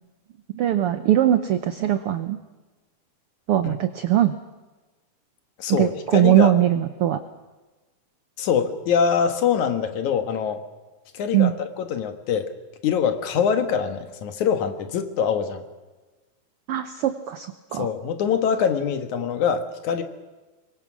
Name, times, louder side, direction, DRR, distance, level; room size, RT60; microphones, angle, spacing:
voice 1, 0.5-2.4 3.5-4.3 5.7-7.2 11.3-11.5 16.7-17.9, right 12 dB, 80° right, 10 dB, 1.3 m, -21 dB
voice 2, 5.6-6.5 8.4-10.6 11.1-12.5 12.8-15.6 17.7-20.0, left 7 dB, 70° left, 8 dB, 2.7 m, -24 dB
25.0 x 22.0 x 6.2 m, 1.2 s
omnidirectional pair, 3.7 m